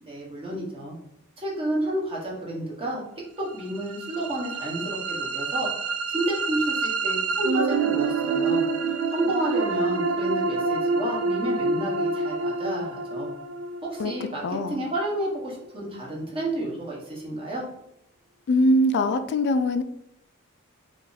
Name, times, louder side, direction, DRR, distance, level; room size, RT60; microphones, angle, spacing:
voice 1, 0.0-1.0 1.4-3.1 3.4-5.7 6.1-8.6 9.1-13.3 13.8-14.4 14.7-17.6, right 1 dB, 25° right, -4 dB, 0.9 m, -30 dB
sound 1, 3.6-15.6, right 4 dB, 70° right, 0.3 m, -27 dB
voice 2, 14.4-14.8 18.5-19.8, left 1 dB, 55° left, 10 dB, 0.3 m, -22 dB
2.7 x 2.5 x 3.8 m, 0.80 s
head